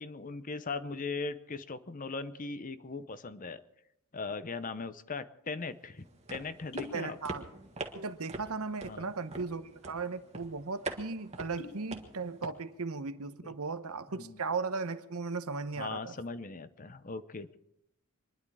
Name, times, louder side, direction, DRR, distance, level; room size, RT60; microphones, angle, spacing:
voice 1, 0.0-3.6 4.1-7.2 8.8-9.1 14.2-14.4 15.8-17.6, left 4 dB, 35° left, 0.7 m, -39 dB
sound 1, 5.6-5.7 6.5-7.1 7.3-8.0 8.3-8.4 9.1-9.6 10.1-10.2 10.4-10.6 11.3-11.9 12.3-12.7, left 4 dB, 75° left, 4.1 m, -47 dB
sound 2, 6.0-12.5, right 2 dB, 30° right, 1.7 m, -44 dB
voice 2, 6.9-7.5 7.9-16.2, right 4 dB, 75° right, 1.0 m, -37 dB
26.0 x 11.0 x 4.9 m
head